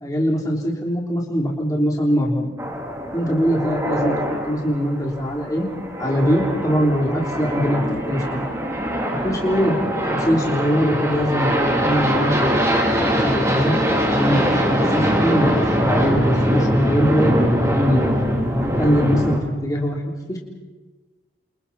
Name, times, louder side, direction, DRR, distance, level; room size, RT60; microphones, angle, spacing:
voice 1, 0.0-2.5 3.1-4.2 4.5-5.7 6.0-8.5 9.2-9.8 10.1-12.6 13.1-13.8 14.1-18.1 18.8-20.0 20.3-20.4, equal, 20° left, -2 dB, 3.6 m, -22 dB
sound 1, 2.6-19.4, equal, 15° right, 3.3 m, -22 dB
29.5 x 27.5 x 4.3 m, 1.2 s
head